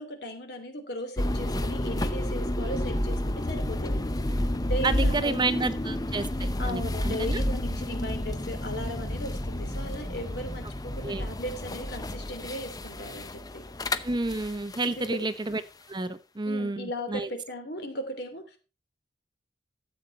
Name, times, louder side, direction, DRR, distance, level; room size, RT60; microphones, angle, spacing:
voice 1, 0.0-4.0 4.7-5.6 6.6-13.6 14.8-15.2 16.5-18.6, equal, 60° left, 6 dB, 2.9 m, -37 dB
sound 1, 1.2-15.1, left 1 dB, 20° left, 0.7 m, -30 dB
voice 2, 4.8-7.4 11.0-11.2 14.0-15.6 15.9-17.3, right 3 dB, 25° right, 12 dB, 0.7 m, -30 dB
13.0 x 8.0 x 4.3 m, 0.32 s
head